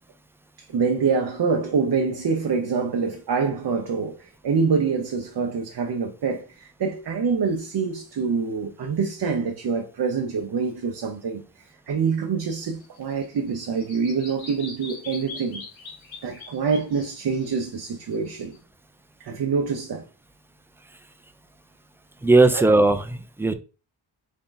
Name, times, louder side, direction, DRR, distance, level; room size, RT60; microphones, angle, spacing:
voice 1, 0.6-11.4 11.9-15.6 16.2-18.6 19.2-20.1 22.5-22.6, right 5 dB, 55° right, 0.8 m, -25 dB
Bird vocalization bird call bird song, 12.7-18.6, left 3 dB, 90° left, 1.4 m, -42 dB
voice 2, 22.2-23.5, right 2 dB, 5° right, 0.5 m, -18 dB
3.7 x 3.6 x 3.9 m
cardioid pair, 90°, 46 cm